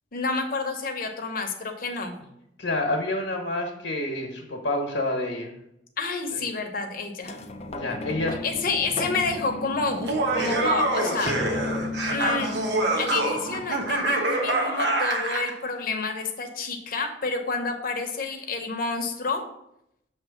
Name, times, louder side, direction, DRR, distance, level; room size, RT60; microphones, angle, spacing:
voice 1, 0.1-2.1 6.0-7.4 8.4-11.3 12.1-12.6 13.0-19.4, left 4 dB, 50° left, 4 dB, 1.0 m, -29 dB
voice 2, 2.6-5.5 7.7-8.3, left 2 dB, 80° left, 0 dB, 1.2 m, -28 dB
sound 1, 7.2-14.0 14.6-14.7, left 2 dB, 35° left, 0.5 m, -35 dB
Laughter, 9.9-15.5, right 2 dB, 65° right, 1.2 m, -26 dB
7.0 x 3.2 x 5.8 m, 0.78 s
head